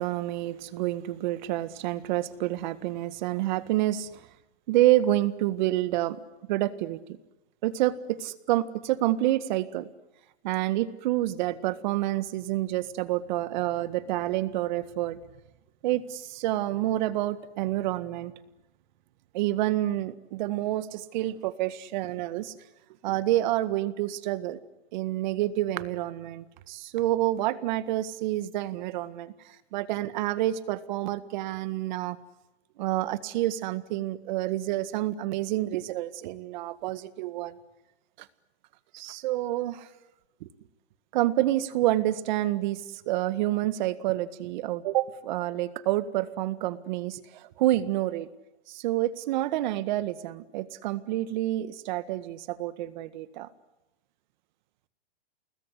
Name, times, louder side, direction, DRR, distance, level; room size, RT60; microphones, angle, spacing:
voice 1, 0.0-4.2 4.7-6.2 6.5-7.0 7.6-9.9 10.4-15.2 15.8-18.3 19.3-22.5 23.0-24.6 24.9-29.3 29.7-32.2 32.8-37.5 38.9-39.9 41.1-48.3 48.7-53.5, right 15 dB, 45° right, 14 dB, 1.8 m, -28 dB
29.5 x 20.5 x 9.8 m, 0.99 s
hypercardioid pair, 150°, 32 cm